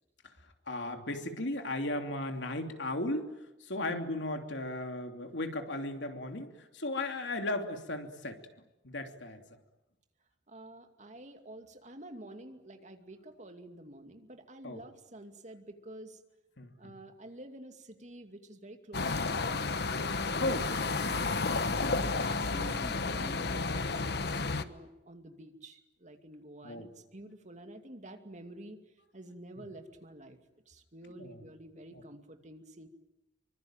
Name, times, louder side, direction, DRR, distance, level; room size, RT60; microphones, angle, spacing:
voice 1, 0.7-3.3 3.6-8.4 8.8-9.4 14.6-14.8 16.6-17.0 20.3-20.7 21.8-22.3 26.6-26.9 31.1-31.4 31.9-32.0, left 2 dB, 85° left, 5 dB, 3.0 m, -36 dB
voice 2, 10.5-16.2 16.8-21.5 22.0-28.8 29.1-30.4 30.7-32.9, right 1 dB, 40° right, 6 dB, 2.5 m, -49 dB
sound 1, 18.9-24.6, left 3 dB, 65° left, 1.2 m, -31 dB
26.0 x 24.5 x 9.1 m, 0.96 s
head